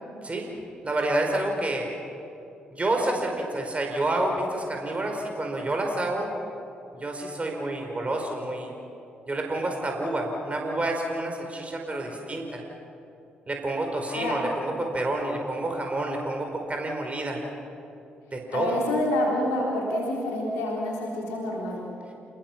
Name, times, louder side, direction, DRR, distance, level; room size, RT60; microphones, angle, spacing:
voice 1, 0.8-1.9 2.7-6.3 6.9-8.7 9.3-12.6 13.5-17.4 18.3-18.7, right 2 dB, 30° right, 2 dB, 4.9 m, -28 dB
voice 2, 14.1-14.4 18.5-21.8, left 1 dB, 80° left, -2 dB, 3.7 m, -27 dB
29.5 x 20.0 x 6.1 m, 2.7 s
hypercardioid pair, 40°, 4 cm